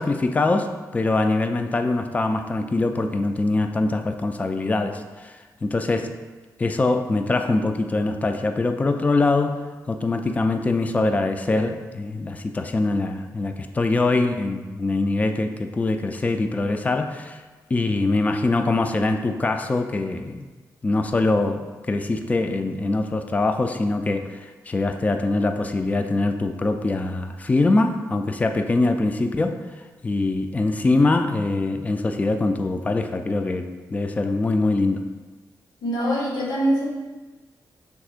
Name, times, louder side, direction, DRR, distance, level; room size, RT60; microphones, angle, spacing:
voice 1, 0.0-5.3 5.6-6.2 6.6-17.4 17.7-20.4 20.8-29.6 30.0-35.0, left 2 dB, 20° left, 6 dB, 0.3 m, -23 dB
voice 2, 35.8-36.9, equal, 90° left, -3 dB, 1.0 m, -23 dB
6.2 x 3.5 x 2.4 m, 1.3 s
cardioid pair, 100°, 7 cm